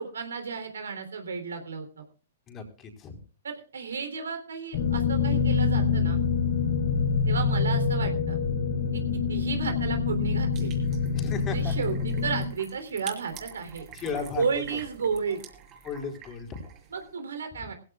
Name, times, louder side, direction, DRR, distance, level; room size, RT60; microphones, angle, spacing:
voice 1, 0.0-2.0 3.4-6.2 7.3-8.4 8.9-9.0 9.3-10.7 11.5-13.9 14.4-15.4 16.9-17.7, right 5 dB, 75° right, 7 dB, 3.3 m, -33 dB
voice 2, 2.5-3.2 11.1-11.8 13.9-14.4 15.8-16.6, left 5 dB, 25° left, 4 dB, 4.2 m, -35 dB
sound 1, 4.7-12.5, left 5 dB, 50° left, 3.8 m, -26 dB
sound 2, 10.5-17.1, right 8 dB, 30° right, 5.3 m, -47 dB
21.5 x 16.5 x 2.4 m, 0.39 s
hypercardioid pair, 120°, 0 cm